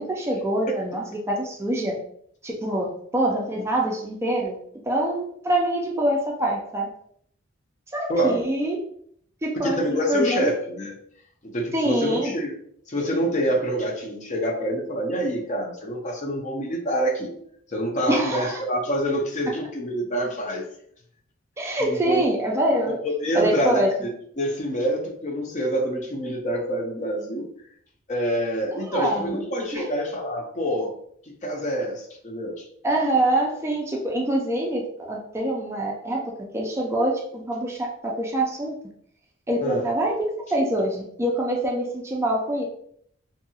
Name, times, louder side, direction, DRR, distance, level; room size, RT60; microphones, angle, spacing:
voice 1, 0.0-2.0 2.4-4.6 4.8-6.9 7.9-8.8 9.4-10.5 11.7-12.3 18.1-18.6 21.6-23.0 23.3-23.9 28.7-29.4 29.7-29.9 32.8-38.8 39.5-42.6, right 1 dB, 15° right, -1 dB, 0.3 m, -25 dB
voice 2, 8.1-8.4 9.6-11.0 11.5-12.5 12.9-17.3 17.7-20.7 21.8-22.2 23.0-23.8 24.4-27.5 28.1-30.9 31.3-32.7 39.6-39.8, equal, 40° left, 1 dB, 0.5 m, -26 dB
2.6 x 2.3 x 2.7 m, 0.66 s
head